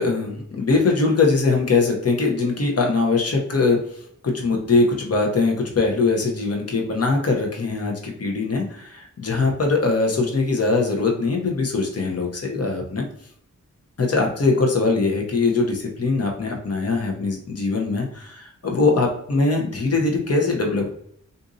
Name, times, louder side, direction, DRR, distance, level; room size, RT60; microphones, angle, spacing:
voice 1, 0.0-3.8 4.2-13.0 14.0-20.9, left 3 dB, 50° left, 1 dB, 0.8 m, -21 dB
3.8 x 2.6 x 2.5 m, 0.66 s
wide cardioid pair, 70°, 31 cm